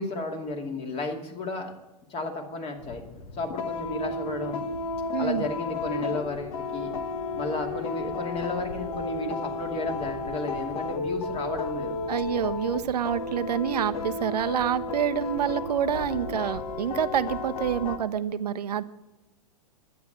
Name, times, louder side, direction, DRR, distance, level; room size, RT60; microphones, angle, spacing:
voice 1, 0.0-1.7 2.1-3.0 3.3-4.6 5.2-6.9 7.4-12.0, left 2 dB, 30° left, 3 dB, 2.5 m, -33 dB
sound 1, 2.8-18.0, left 3 dB, 65° left, 1.6 m, -33 dB
voice 2, 5.1-5.5 12.1-18.8, right 9 dB, 80° right, 12 dB, 0.8 m, -27 dB
11.5 x 8.7 x 7.9 m, 1.0 s
hypercardioid pair, 115°, 20 cm